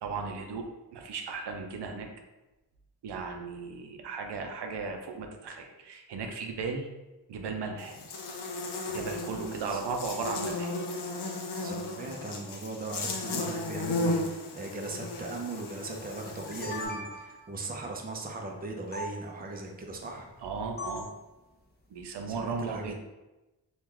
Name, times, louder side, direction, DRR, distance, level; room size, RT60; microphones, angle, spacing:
voice 1, 0.0-2.1 3.0-6.9 7.3-8.0 8.9-10.7 20.4-21.1 21.9-22.9, right 4 dB, 85° right, 3 dB, 0.5 m, -36 dB
Buzz, 7.8-16.9, left 2 dB, 80° left, 0.6 m, -35 dB
voice 2, 9.3-9.8 11.6-20.3 22.3-22.9, right 2 dB, 25° right, 2 dB, 0.5 m, -39 dB
sound 1, 16.3-17.5 18.9-19.1 20.8-21.2, left 1 dB, 25° left, 0.6 m, -38 dB
3.0 x 2.3 x 3.6 m, 1.0 s
wide cardioid pair, 90°, 40 cm